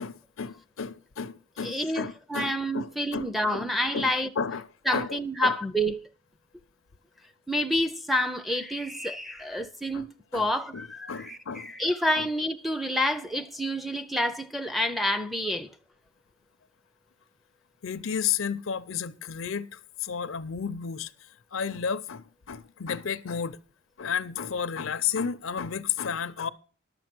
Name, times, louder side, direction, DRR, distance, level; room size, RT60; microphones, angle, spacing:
voice 1, 0.0-4.7 4.9-5.6 9.9-10.1 10.3-10.5 10.7-11.7 12.2-12.3 17.8-21.1 21.5-23.6 24.0-26.5, left 7 dB, 75° left, 0.6 m, -32 dB
voice 2, 1.6-4.3 4.9-6.0 7.5-15.7, equal, ahead, 0.5 m, -28 dB
11.0 x 6.9 x 6.0 m
head